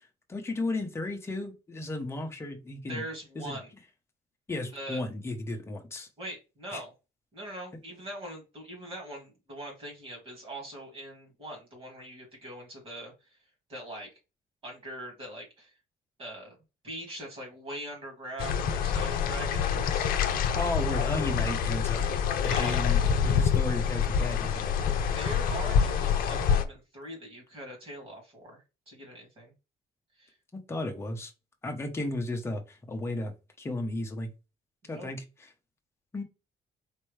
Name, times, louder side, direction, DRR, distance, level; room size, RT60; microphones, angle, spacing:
voice 1, 0.3-3.0 3.4-3.6 4.5-6.1 6.7-6.8 20.5-22.0 22.4-25.0 30.5-31.3 31.6-34.3 34.9-35.5 36.1-36.2, left 2 dB, 15° left, 3 dB, 0.9 m, -34 dB
voice 2, 2.9-3.7 4.7-5.0 6.2-6.9 7.3-13.1 13.7-14.1 14.6-15.7 16.2-16.5 16.8-20.0 22.4-22.8 25.1-29.5 30.2-30.3 34.8-35.1, right 1 dB, 40° right, 0 dB, 2.6 m, -42 dB
sound 1, 18.4-26.6, left 7 dB, 75° left, 0.6 m, -26 dB
4.4 x 3.0 x 3.2 m, 0.28 s
cardioid pair, 160°, 15 cm